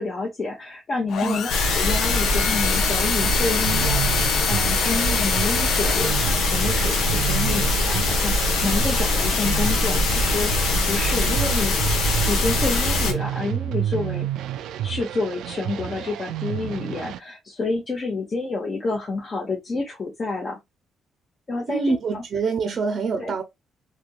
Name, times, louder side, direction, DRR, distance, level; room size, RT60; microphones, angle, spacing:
voice 1, 0.0-11.8 12.3-14.3 14.8-20.6 21.5-22.2 23.2-23.3, left 3 dB, 35° left, 0.9 m, -29 dB
sound 1, 1.1-6.9, left 7 dB, 65° left, 0.4 m, -28 dB
sound 2, 1.5-13.1, left 2 dB, 85° left, 0.9 m, -22 dB
sound 3, 3.2-17.2, right 12 dB, 90° right, 0.3 m, -31 dB
voice 2, 21.7-23.4, right 4 dB, 40° right, 0.6 m, -25 dB
3.4 x 2.8 x 2.3 m
cardioid pair, 135°, 0 cm